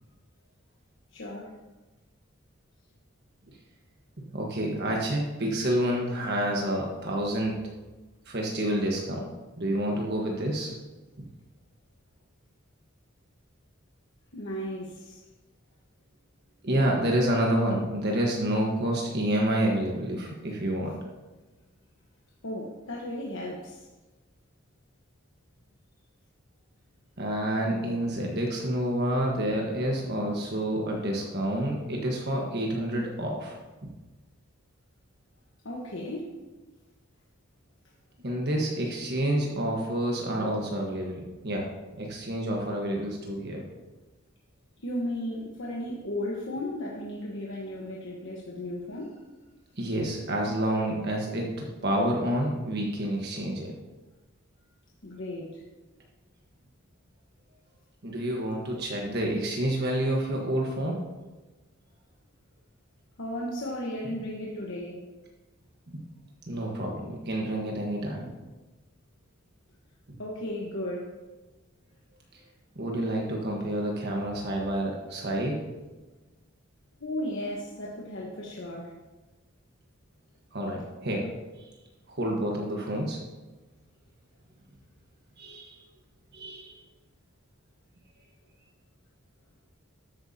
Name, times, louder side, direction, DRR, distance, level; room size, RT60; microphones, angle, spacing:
voice 1, 1.1-1.6 14.3-15.2 22.4-23.9 35.6-36.3 44.8-49.2 50.0-50.1 55.0-55.6 63.2-65.0 70.2-71.1 77.0-78.9, left 1 dB, 65° left, -3 dB, 1.3 m, -35 dB
voice 2, 4.3-7.6 8.3-9.3 9.6-10.7 16.6-21.0 27.2-33.6 38.2-41.7 42.0-43.6 49.8-53.7 58.0-61.0 65.9-66.0 66.5-68.3 72.3-72.4 72.7-75.6 80.5-81.3 81.6-81.7 82.1-83.2 85.4-85.8 86.3-86.7, right 1 dB, 55° right, -1 dB, 1.4 m, -28 dB
13.0 x 9.2 x 2.8 m, 1.2 s
head